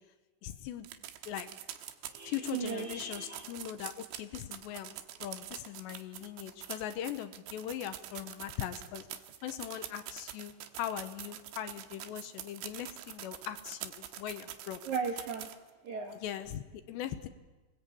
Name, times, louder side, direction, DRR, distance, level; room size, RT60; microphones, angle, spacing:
voice 1, 0.4-0.9 1.3-1.5 2.2-5.0 5.2-10.5 10.8-14.8 16.2-17.3, left 11 dB, 75° left, 10 dB, 3.0 m, -40 dB
sound 1, 0.8-15.7 16.1-16.2 16.5-16.6, right 12 dB, 80° right, 3.5 m, -45 dB
voice 2, 2.1-3.5 14.8-15.5 15.8-16.2, right 5 dB, 60° right, 2 dB, 2.1 m, -37 dB
26.5 x 20.0 x 8.6 m, 1.2 s
omnidirectional pair, 5.4 m